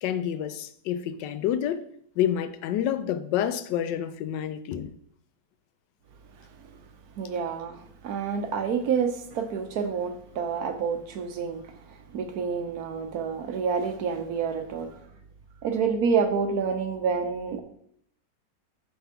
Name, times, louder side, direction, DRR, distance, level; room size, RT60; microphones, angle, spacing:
voice 1, 0.0-1.8 2.2-4.9, left 10 dB, 85° left, 1.2 m, -28 dB
voice 2, 7.2-15.0 15.6-17.6, right 6 dB, 65° right, 1.1 m, -28 dB
7.4 x 3.4 x 5.6 m
omnidirectional pair, 1.9 m